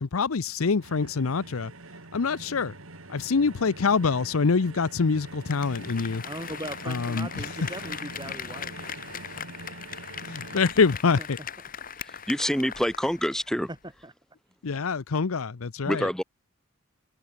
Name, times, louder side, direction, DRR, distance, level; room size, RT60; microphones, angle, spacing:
voice 1, 0.0-1.7 2.1-2.7 3.1-6.2 6.9-7.3 10.3-11.4 14.6-16.1, left 4 dB, 85° left, 0.7 m, -25 dB
sound 1, 0.8-10.7, right 2 dB, 80° right, 3.1 m, -44 dB
Applause, 5.3-13.5 13.8-13.9, left 7 dB, 40° left, 3.0 m, -39 dB
voice 2, 6.2-8.7 11.2-11.3 14.0-14.1, right 1 dB, 20° right, 6.6 m, -39 dB
voice 3, 12.0-13.7 15.9-16.2, equal, ahead, 1.0 m, -27 dB
head